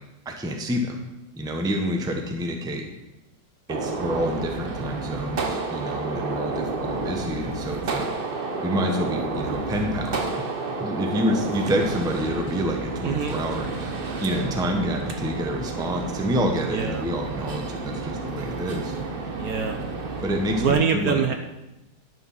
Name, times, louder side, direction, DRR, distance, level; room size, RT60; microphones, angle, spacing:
voice 1, 0.2-1.0 1.3-2.9 3.7-8.1 8.6-10.3 10.8-13.9 14.2-18.9 20.2-21.2, equal, 5° right, 3 dB, 0.7 m, -28 dB
Gunshot gunfire, 3.7-20.7, right 3 dB, 40° right, 0.9 m, -30 dB
voice 2, 13.0-13.4 16.7-17.0 19.3-19.8 20.6-21.3, right 6 dB, 60° right, 5 dB, 1.1 m, -24 dB
11.0 x 6.9 x 5.6 m, 0.95 s
omnidirectional pair, 2.0 m